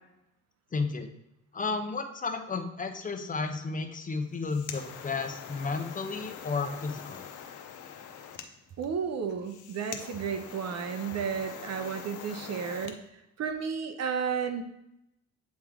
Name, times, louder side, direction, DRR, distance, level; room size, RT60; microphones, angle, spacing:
voice 1, 0.7-1.1 1.5-7.3, left 4 dB, 25° left, 6 dB, 0.7 m, -33 dB
sound 1, 4.2-13.0, left 8 dB, 80° left, 0.7 m, -44 dB
voice 2, 8.8-13.0 13.4-14.6, right 6 dB, 60° right, 7 dB, 0.7 m, -32 dB
8.4 x 3.1 x 3.6 m, 0.84 s
cardioid pair, 90°, 30 cm